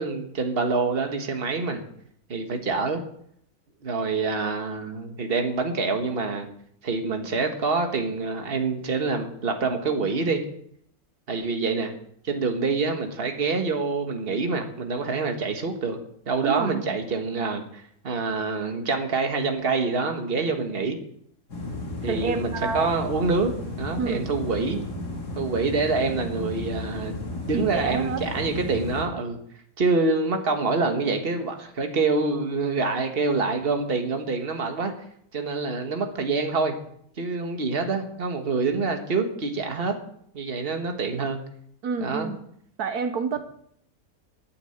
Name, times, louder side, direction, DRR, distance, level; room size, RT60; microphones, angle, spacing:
voice 1, 0.0-1.8 2.3-3.0 3.8-6.5 6.8-10.4 11.3-11.9 12.2-16.0 16.2-21.0 22.0-23.5 23.8-24.8 25.3-27.1 27.5-29.4 29.8-34.9 35.3-36.7 37.2-39.9 40.3-41.4 42.0-42.3, right 4 dB, 40° right, 5 dB, 1.7 m, -26 dB
voice 2, 16.4-16.8 22.1-22.9 24.0-24.2 24.7-24.8 27.5-28.2 41.8-42.4 42.8-43.4, right 5 dB, 75° right, 8 dB, 1.4 m, -28 dB
sound 1, 21.5-29.0, left 2 dB, 80° left, 3.1 m, -34 dB
12.0 x 9.2 x 7.9 m, 0.68 s
omnidirectional pair, 1.7 m